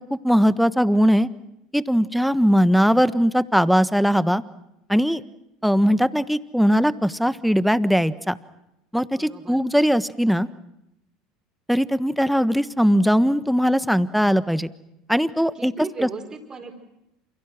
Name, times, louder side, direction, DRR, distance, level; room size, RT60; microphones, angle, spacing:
voice 1, 0.1-1.3 1.7-4.4 4.9-5.2 5.6-8.4 8.9-10.5 11.7-14.7 15.1-15.7 16.0-16.1, equal, ahead, 14 dB, 1.3 m, -20 dB
voice 2, 9.1-9.6 15.5-16.7, right 4 dB, 25° right, 2 dB, 4.9 m, -36 dB
29.0 x 28.0 x 6.2 m, 0.86 s
hypercardioid pair, 75°, 2 cm